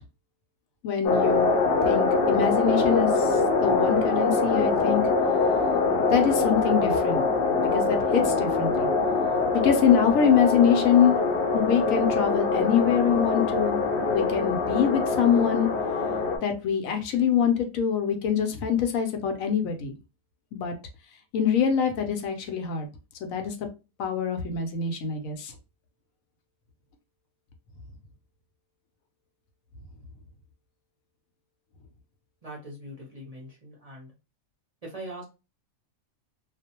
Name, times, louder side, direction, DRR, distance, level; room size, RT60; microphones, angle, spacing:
voice 1, 0.8-1.5 1.8-5.1 6.1-7.3 7.7-8.9 9.5-11.1 11.5-13.8 14.1-15.7 16.4-19.9 20.5-20.8 21.3-22.9 23.2-23.5 24.0-25.5, left 8 dB, 80° left, 6 dB, 1.0 m, -24 dB
sound 1, 1.0-16.4, left 3 dB, 55° left, 0.7 m, -24 dB
voice 2, 32.4-34.1 34.8-35.2, right 1 dB, 40° right, -4 dB, 0.6 m, -41 dB
2.4 x 2.0 x 2.8 m, 0.29 s
omnidirectional pair, 1.4 m